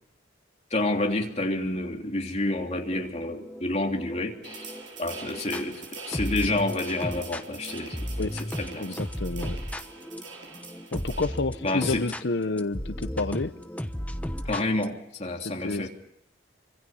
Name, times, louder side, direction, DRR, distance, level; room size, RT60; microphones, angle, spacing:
voice 1, 0.7-4.7 5.0-8.0 8.3-8.9 11.6-12.1 14.4-15.9, left 2 dB, 35° left, 2 dB, 3.1 m, -29 dB
sound 1, 2.9-5.6 6.1-14.9, equal, 5° left, 1.0 m, -35 dB
sound 2, 4.4-11.3, right 4 dB, 85° right, 7.2 m, -43 dB
voice 2, 8.8-9.6 10.9-13.5 15.4-15.9, left 3 dB, 65° left, 10 dB, 0.9 m, -29 dB
27.0 x 25.5 x 5.7 m, 0.77 s
head